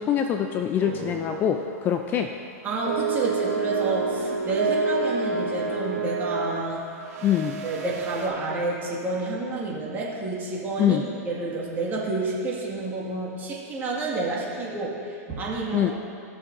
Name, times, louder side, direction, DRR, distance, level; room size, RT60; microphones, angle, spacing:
voice 1, 0.0-2.3 7.2-7.6 10.8-11.0 15.7-15.9, left 9 dB, 25° left, 6 dB, 0.4 m, -24 dB
sound 1, 0.8-1.6 1.9-2.1 2.9-8.3, right 4 dB, 80° right, 1.7 m, -28 dB
voice 2, 2.6-6.8 7.6-15.9, right 3 dB, 20° right, -4 dB, 1.9 m, -29 dB
17.0 x 6.3 x 2.6 m, 2.5 s
hypercardioid pair, 140°, 8 cm